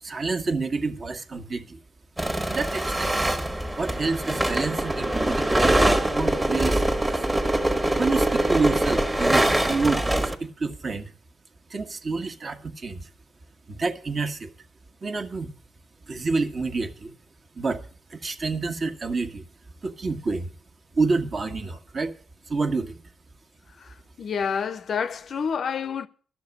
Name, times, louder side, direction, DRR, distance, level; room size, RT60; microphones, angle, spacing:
voice 1, 0.0-1.8 2.5-3.2 3.8-7.2 8.0-11.1 11.7-13.1 13.7-14.5 15.0-15.5 16.1-17.1 17.5-19.5 19.8-20.5 20.9-22.1 22.5-23.0, right 3 dB, 40° right, 1.5 m, -28 dB
sound 1, 2.2-10.4, right 1 dB, 15° right, 1.4 m, -23 dB
voice 2, 23.8-26.1, left 6 dB, 55° left, 0.7 m, -29 dB
12.0 x 6.8 x 8.1 m
cardioid pair, 90°, 0 cm